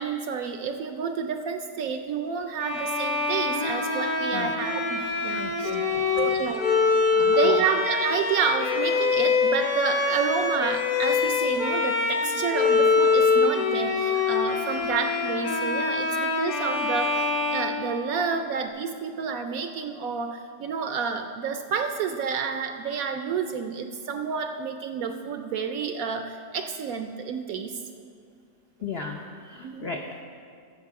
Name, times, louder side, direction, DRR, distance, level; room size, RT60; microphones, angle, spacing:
voice 1, 0.0-5.8 6.2-6.6 7.2-27.8 29.6-29.9, right 6 dB, 70° right, 7 dB, 0.9 m, -30 dB
Bowed string instrument, 2.6-18.5, left 4 dB, 60° left, 1.5 m, -24 dB
voice 2, 5.3-6.3 7.1-7.6 28.8-30.2, left 5 dB, 75° left, 2 dB, 0.5 m, -37 dB
13.5 x 7.0 x 4.7 m, 2.2 s
omnidirectional pair, 1.8 m